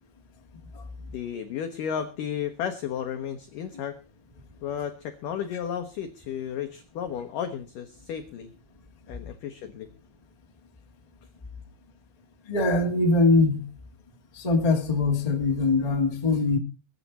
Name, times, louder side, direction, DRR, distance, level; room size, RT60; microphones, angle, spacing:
voice 1, 1.1-4.0 4.6-8.5 9.1-9.9, left 8 dB, 75° left, 1.9 m, -33 dB
voice 2, 12.5-13.7 14.3-16.6, left 3 dB, 20° left, 1.1 m, -22 dB
22.5 x 9.4 x 4.1 m
omnidirectional pair, 5.3 m